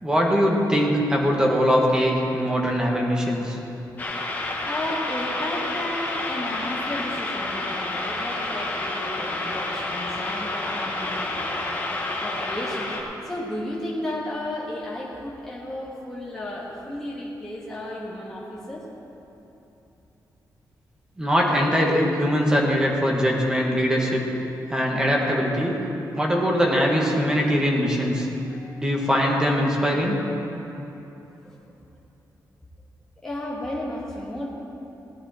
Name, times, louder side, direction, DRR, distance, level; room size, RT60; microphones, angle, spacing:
voice 1, 0.0-3.6 21.2-24.2 24.7-25.7 26.1-28.3 28.8-30.2, equal, 10° right, -2 dB, 1.6 m, -21 dB
sound 1, 4.0-13.0, left 2 dB, 25° left, 1.4 m, -29 dB
voice 2, 4.6-11.8 12.2-18.9 28.5-28.8 31.4-31.8 33.2-34.5, left 1 dB, 5° left, -7 dB, 1.7 m, -33 dB
17.5 x 10.0 x 4.4 m, 3.0 s
wide cardioid pair, 175°, 7 cm